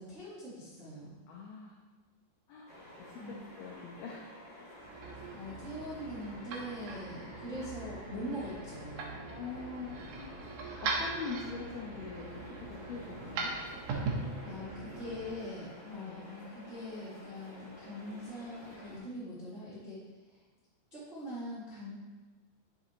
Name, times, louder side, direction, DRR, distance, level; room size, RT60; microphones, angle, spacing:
voice 1, 0.0-1.2 3.2-3.4 5.3-9.2 14.4-20.0 20.9-21.9, equal, 25° right, -11 dB, 1.6 m, -42 dB
voice 2, 1.3-1.8 2.5-2.7 3.3-4.4 9.3-10.4 10.8-12.4 12.7-13.5 15.8-16.2, left 5 dB, 75° left, -3 dB, 2.5 m, -43 dB
sound 1, 2.7-19.0, left 1 dB, 35° left, 2.5 m, -51 dB
sound 2, 4.8-15.4, right 3 dB, 80° right, 1.8 m, -40 dB
10.0 x 6.6 x 3.0 m, 1.3 s
omnidirectional pair, 4.9 m